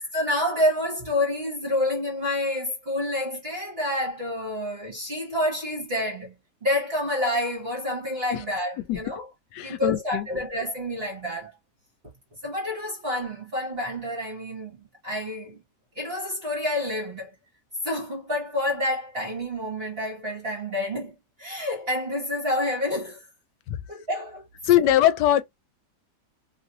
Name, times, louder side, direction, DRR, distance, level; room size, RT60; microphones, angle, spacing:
voice 1, 0.1-6.3 6.6-9.3 9.6-11.5 12.4-15.6 15.9-17.3 17.8-23.3 23.9-24.4, left 1 dB, 40° right, 1.3 m, -28 dB
voice 2, 9.5-10.3 23.7-23.8 24.6-25.4, left 12 dB, 85° left, 1.2 m, -21 dB
3.0 x 2.7 x 2.7 m
omnidirectional pair, 1.8 m